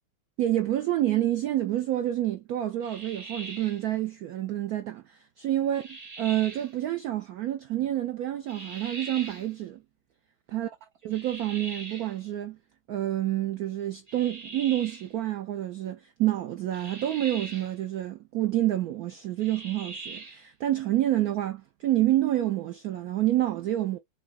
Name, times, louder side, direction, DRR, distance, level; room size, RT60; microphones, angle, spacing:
voice 1, 0.4-9.8 10.5-10.7 11.0-12.6 12.9-24.0, right 13 dB, 85° right, 0.8 m, -28 dB
sound 1, 2.8-3.9 5.7-6.7 8.5-9.5 11.1-12.2 14.1-15.1 16.7-17.8 19.4-20.5, right 3 dB, 30° right, 0.7 m, -42 dB
6.4 x 2.8 x 2.3 m
omnidirectional pair, 2.2 m